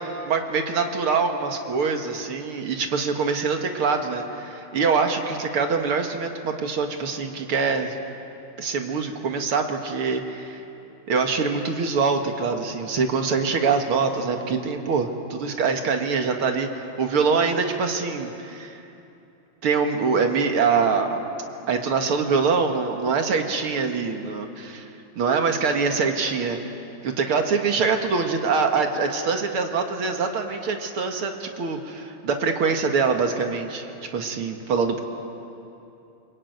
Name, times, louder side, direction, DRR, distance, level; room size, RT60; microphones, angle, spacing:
voice 1, 0.3-8.0 8.6-10.6 11.1-18.8 19.6-21.2 21.7-24.9 25.2-26.6 27.0-35.0, right 5 dB, 80° right, 4 dB, 2.6 m, -24 dB
25.5 x 22.5 x 9.4 m, 2.8 s
omnidirectional pair, 2.4 m